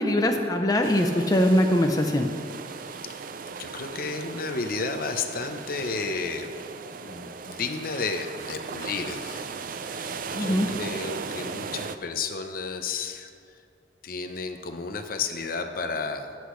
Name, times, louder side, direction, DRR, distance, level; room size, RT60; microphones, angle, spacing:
voice 1, 0.0-2.3 10.3-10.7, left 1 dB, 20° left, 3 dB, 0.6 m, -22 dB
sound 1, 0.8-12.0, right 5 dB, 50° right, 0.4 m, -37 dB
voice 2, 2.7-3.2 3.6-6.6 6.9-9.5 9.8-13.6 14.0-16.4, left 4 dB, 55° left, 7 dB, 0.7 m, -32 dB
19.5 x 8.1 x 3.2 m, 2.3 s
head